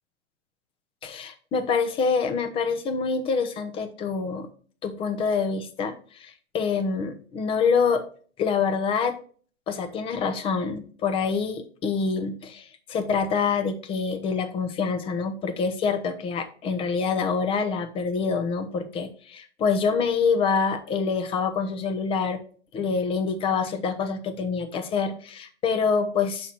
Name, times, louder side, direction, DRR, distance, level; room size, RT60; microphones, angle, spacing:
voice 1, 1.0-4.5 4.8-8.0 8.4-9.2 9.7-22.4 22.7-26.5, left 5 dB, 15° left, 9 dB, 0.5 m, -26 dB
5.7 x 4.3 x 4.4 m, 0.43 s
hypercardioid pair, 120°, 38 cm